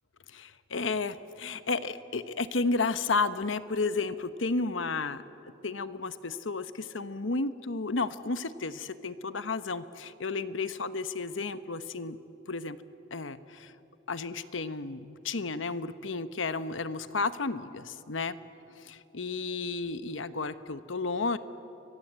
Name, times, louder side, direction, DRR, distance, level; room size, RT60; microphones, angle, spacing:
voice 1, 0.3-5.2 5.6-12.2 12.5-12.8 13.1-13.7 14.1-18.4 18.8-21.4, left 3 dB, 85° left, 12 dB, 1.0 m, -32 dB
29.5 x 23.0 x 8.1 m, 2.9 s
head